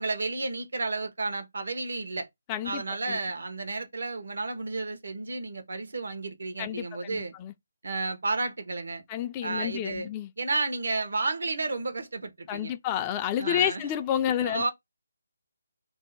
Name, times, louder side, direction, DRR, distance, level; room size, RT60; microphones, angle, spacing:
voice 1, 0.0-2.3 2.6-7.3 7.8-9.0 9.4-10.1 10.4-12.7 13.4-13.8 14.4-14.7, right 3 dB, 70° right, 0.9 m, -32 dB
voice 2, 2.5-3.2 6.6-7.5 9.1-10.3 12.5-14.7, left 10 dB, 20° left, 0.4 m, -30 dB
2.6 x 2.1 x 4.0 m
figure-of-eight pair, 155°, 0 cm